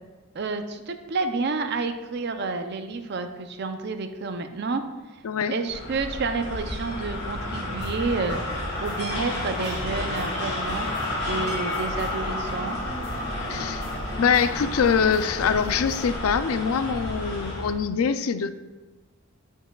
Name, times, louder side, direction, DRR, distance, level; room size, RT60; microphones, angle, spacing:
voice 1, 0.3-4.8 5.5-8.4 8.8-10.9 11.3-12.8, right 3 dB, 50° right, 8 dB, 0.5 m, -29 dB
sound 1, 5.7-17.8, left 1 dB, 50° left, 1.9 m, -31 dB
sound 2, 7.8-16.1, right 1 dB, 10° left, 1.8 m, -40 dB
sound 3, 8.3-15.8, left 1 dB, 20° right, 1.5 m, -45 dB
voice 2, 13.5-13.8 14.2-18.5, left 6 dB, 80° left, 12 dB, 0.4 m, -24 dB
13.5 x 4.6 x 2.3 m, 1.2 s
head